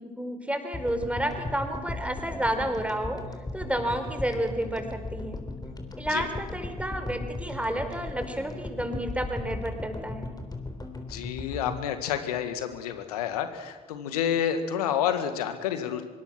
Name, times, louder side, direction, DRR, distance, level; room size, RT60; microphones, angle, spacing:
voice 1, 0.0-3.2 3.5-5.4 6.0-10.4, right 1 dB, 5° right, 6 dB, 4.5 m, -31 dB
sound 1, 0.7-13.1, left 2 dB, 20° left, 3.8 m, -37 dB
voice 2, 11.1-16.0, left 9 dB, 80° left, 9 dB, 2.0 m, -29 dB
25.5 x 23.0 x 6.1 m, 1.4 s
figure-of-eight pair, 45°, 19 cm